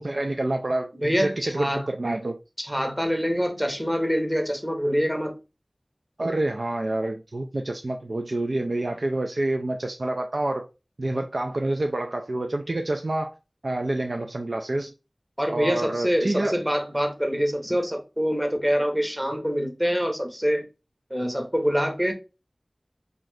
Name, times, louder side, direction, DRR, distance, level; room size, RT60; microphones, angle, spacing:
voice 1, 0.0-2.4 6.2-10.7 11.0-13.3 13.6-14.9 15.5-16.6, right 2 dB, 75° right, 0.3 m, -28 dB
voice 2, 0.9-1.9 2.6-5.4 15.4-20.6 21.1-22.1, equal, 10° right, 0.8 m, -25 dB
2.6 x 2.4 x 3.2 m
wide cardioid pair, 40°, 0 cm